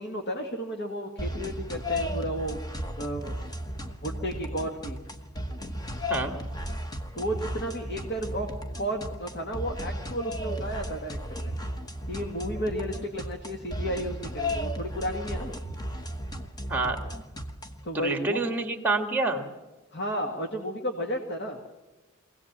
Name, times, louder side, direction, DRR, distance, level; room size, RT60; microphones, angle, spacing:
voice 1, 0.0-2.6 3.0-3.4 4.0-5.0 7.1-8.5 8.8-11.5 12.1-15.5 17.8-18.4 19.9-21.6, right 1 dB, 50° left, 3 dB, 1.9 m, -33 dB
sound 1, 1.2-17.9, equal, 15° left, 1.1 m, -35 dB
voice 2, 16.7-17.0 17.9-19.5, right 3 dB, 10° right, 5 dB, 2.0 m, -27 dB
24.0 x 17.5 x 7.4 m, 1.1 s
head